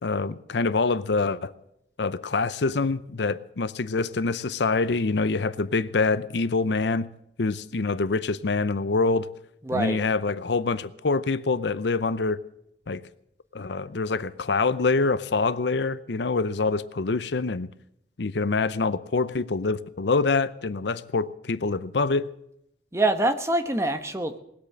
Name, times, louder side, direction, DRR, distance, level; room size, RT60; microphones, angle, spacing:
voice 1, 0.0-1.5 2.0-7.1 7.4-9.3 9.7-12.4 12.9-13.0 13.5-17.7 18.2-22.3, left 3 dB, 75° left, 0.7 m, -25 dB
voice 2, 9.6-10.0 22.9-24.4, right 2 dB, 15° right, 1.1 m, -25 dB
19.5 x 8.5 x 7.6 m
head